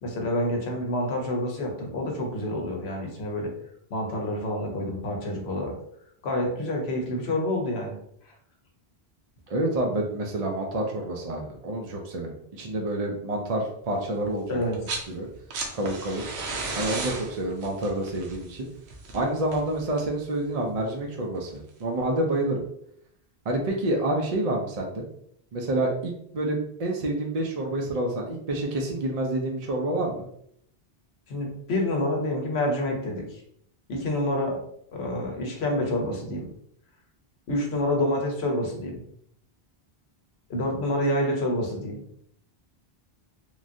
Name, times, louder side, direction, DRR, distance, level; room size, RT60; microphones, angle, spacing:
voice 1, 0.0-3.5 3.9-5.7 6.2-8.0 14.5-14.8 31.3-33.4 33.9-34.6 34.9-36.5 37.5-39.0 40.5-42.0, left 1 dB, 80° left, 1 dB, 1.0 m, -28 dB
voice 2, 9.5-14.6 15.1-15.3 15.7-16.2 16.8-18.7 19.1-22.6 23.5-25.0 25.5-30.3, right 1 dB, 55° right, 0 dB, 0.4 m, -28 dB
sound 1, 14.6-15.1 15.4-20.2 21.5-21.6, right 3 dB, 85° right, 0.9 m, -34 dB
3.2 x 2.3 x 2.5 m, 0.70 s
omnidirectional pair, 1.1 m